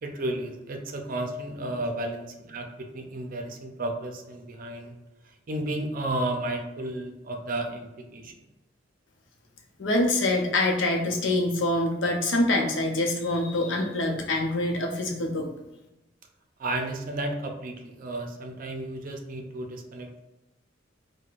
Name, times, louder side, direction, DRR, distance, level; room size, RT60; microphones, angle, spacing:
voice 1, 0.0-4.9 5.5-8.3 16.6-20.2, right 1 dB, 50° right, 3 dB, 0.5 m, -33 dB
voice 2, 9.8-15.5, left 2 dB, 85° left, 1 dB, 0.7 m, -25 dB
4.6 x 2.2 x 2.4 m, 0.99 s
head